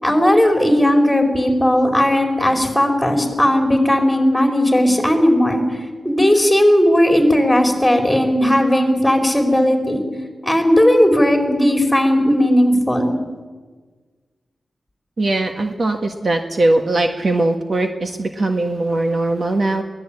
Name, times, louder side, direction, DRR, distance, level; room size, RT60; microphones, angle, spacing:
voice 1, 0.0-5.8 6.0-10.0 10.4-13.1, left 1 dB, 5° left, 3 dB, 4.6 m, -16 dB
voice 2, 15.2-19.8, right 2 dB, 45° right, 5 dB, 1.6 m, -20 dB
22.5 x 17.5 x 8.7 m, 1.4 s
wide cardioid pair, 115°, 0 cm